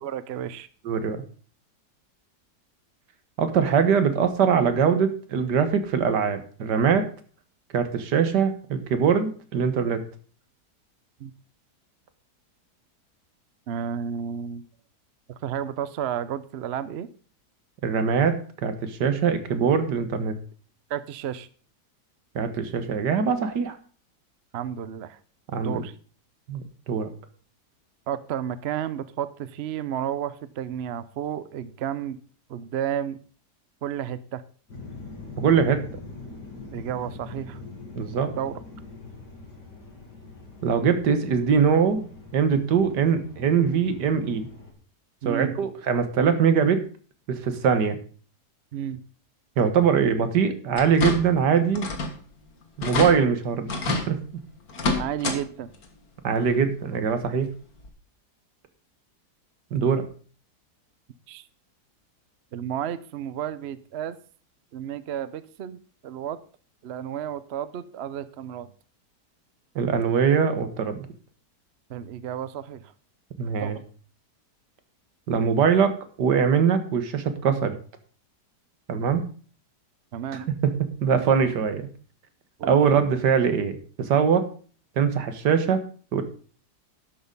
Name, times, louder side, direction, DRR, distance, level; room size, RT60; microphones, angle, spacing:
voice 1, 0.0-0.7 11.2-11.3 13.7-14.7 15.4-17.1 20.9-21.5 24.5-25.2 25.6-25.9 28.1-32.2 32.5-33.2 33.8-34.4 36.7-37.6 38.4-38.6 45.2-45.5 48.7-49.0 55.0-55.7 61.3-61.4 62.5-64.2 64.7-66.4 66.8-68.7 71.9-72.9 73.6-73.8 80.1-80.4 82.6-82.8, right 9 dB, 55° right, 15 dB, 0.7 m, -32 dB
voice 2, 0.9-1.2 3.4-7.1 7.7-10.0 17.8-18.4 18.6-20.3 22.4-23.7 25.5-25.8 26.5-27.1 35.4-35.8 38.0-38.3 40.6-42.1 42.3-44.5 45.3-46.8 47.3-48.0 49.6-51.9 52.8-54.2 56.2-57.5 59.7-60.0 69.8-71.1 73.4-73.8 75.3-77.8 78.9-79.2 80.3-80.7 81.0-81.9 82.6-84.4 85.0-85.9 86.1-86.2, right 6 dB, 80° right, 10 dB, 1.8 m, -22 dB
sound 1, 34.7-44.7, left 3 dB, 90° left, 3.6 m, -43 dB
sound 2, 50.7-51.4 51.7-52.2 52.5-52.6 52.8-53.1 53.7-54.1 54.7-55.4 55.7-55.9 57.2-57.3 57.8-57.9, left 3 dB, 60° left, 2.1 m, -27 dB
11.5 x 6.5 x 5.3 m, 0.41 s
omnidirectional pair, 1.8 m